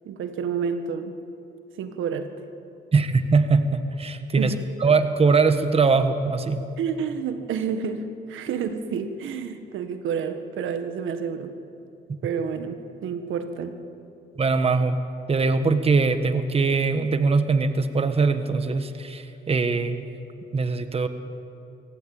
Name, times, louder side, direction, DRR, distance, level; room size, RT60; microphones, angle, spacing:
voice 1, 0.0-1.1 1.8-2.3 4.4-4.6 6.8-11.5 12.2-13.7, right 6 dB, 80° right, 8 dB, 1.6 m, -29 dB
voice 2, 2.9-4.5 4.8-6.6 14.4-15.0 15.3-20.0 20.5-21.1, right 4 dB, 30° right, 9 dB, 1.4 m, -21 dB
24.5 x 16.5 x 8.8 m, 2.7 s
cardioid pair, 90°, 20 cm